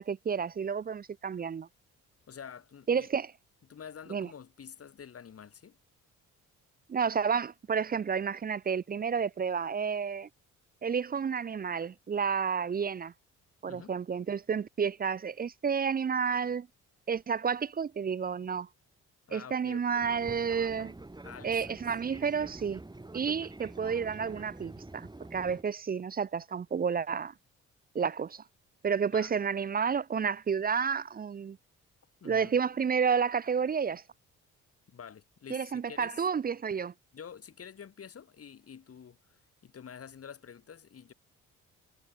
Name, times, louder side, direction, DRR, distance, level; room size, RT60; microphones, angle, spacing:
voice 1, 0.0-1.7 2.9-3.3 4.1-4.3 6.9-10.3 10.8-13.1 13.6-16.7 17.1-18.7 19.3-20.9 21.4-22.8 23.1-27.3 27.9-28.4 28.8-31.6 32.2-34.0 35.5-36.9, right 6 dB, 30° right, 0.6 m, -30 dB
voice 2, 2.3-3.1 3.7-5.8 13.7-14.0 19.3-20.1 21.2-21.9 29.1-29.4 32.2-32.5 34.9-36.2 37.1-41.1, left 7 dB, 50° left, 6.9 m, -48 dB
Fixed-wing aircraft airplane, 20.0-25.6, right 2 dB, 15° right, 7.7 m, -47 dB
cardioid pair, 90°, 30 cm